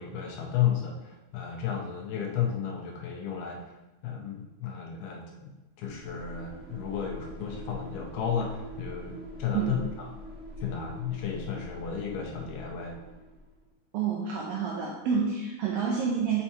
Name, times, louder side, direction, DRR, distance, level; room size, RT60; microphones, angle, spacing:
voice 1, 0.0-3.6 4.0-10.1 10.6-13.0, left 8 dB, 80° left, 0 dB, 2.5 m, -33 dB
sound 1, 5.8-13.6, equal, 35° right, 1.8 m, -44 dB
voice 2, 13.9-16.4, right 6 dB, 80° right, -2 dB, 2.0 m, -28 dB
6.5 x 5.4 x 2.9 m, 1.0 s
omnidirectional pair, 4.8 m